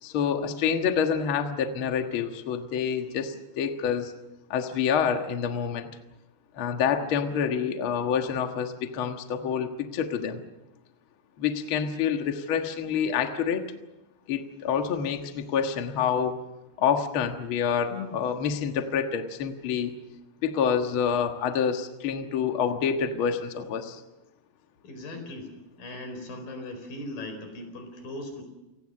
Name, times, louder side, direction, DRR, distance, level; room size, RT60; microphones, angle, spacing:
voice 1, 0.0-4.1 4.5-5.9 6.5-10.4 11.4-13.6 14.3-16.4 16.8-19.9 20.4-24.0, left 7 dB, 75° left, 5 dB, 1.2 m, -27 dB
voice 2, 24.8-25.5 25.8-28.4, left 1 dB, 55° left, 7 dB, 6.1 m, -38 dB
28.0 x 19.0 x 6.6 m, 1.0 s
omnidirectional pair, 4.9 m